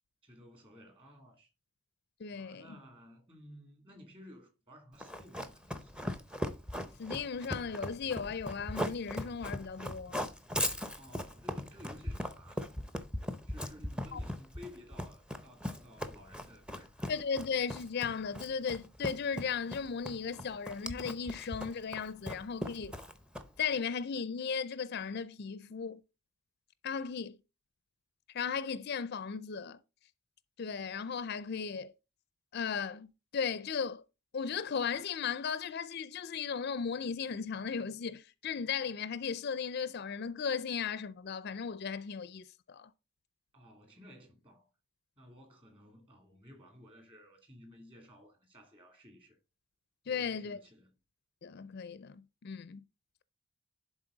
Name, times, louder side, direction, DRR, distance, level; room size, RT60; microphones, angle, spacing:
voice 1, 0.2-1.5 2.3-6.2 11.0-12.7 13.5-17.2 43.5-44.7 45.2-49.4 50.1-50.9, left 1 dB, 25° right, 2.7 m, -55 dB
voice 2, 2.2-2.8 7.0-10.3 14.1-14.2 17.1-23.0 23.6-26.0 26.8-27.4 28.3-29.8 30.6-31.9 32.5-34.0 34.3-42.9 50.1-50.6 51.4-52.8, left 6 dB, 50° left, 0.4 m, -36 dB
Run, 5.0-23.7, equal, 5° right, 0.6 m, -39 dB
11.0 x 4.0 x 3.9 m
head